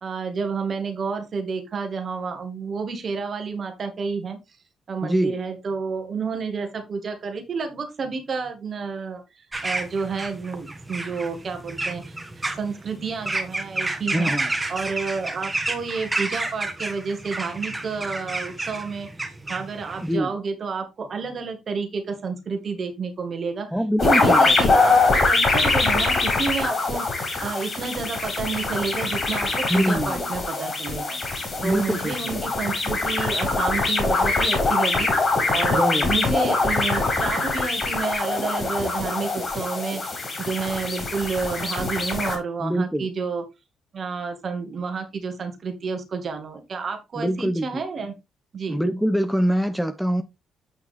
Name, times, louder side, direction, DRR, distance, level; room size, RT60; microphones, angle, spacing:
voice 1, 0.0-4.4 4.9-12.2 12.6-14.3 14.7-23.7 24.0-27.1 27.4-31.2 31.6-35.1 35.5-40.0 40.4-43.5 43.9-48.1 48.5-48.8, right 5 dB, 50° right, 2.3 m, -30 dB
voice 2, 5.0-5.3 14.1-14.5 20.0-20.3 23.7-24.7 29.7-30.2 31.6-32.3 35.7-36.1 42.6-43.1 47.2-47.7 48.7-50.2, equal, ahead, 1.0 m, -24 dB
sound 1, 9.5-20.2, right 2 dB, 20° right, 1.8 m, -31 dB
sound 2, 24.0-42.4, left 3 dB, 40° left, 5.3 m, -23 dB
8.7 x 5.8 x 3.5 m
hypercardioid pair, 45°, 0 cm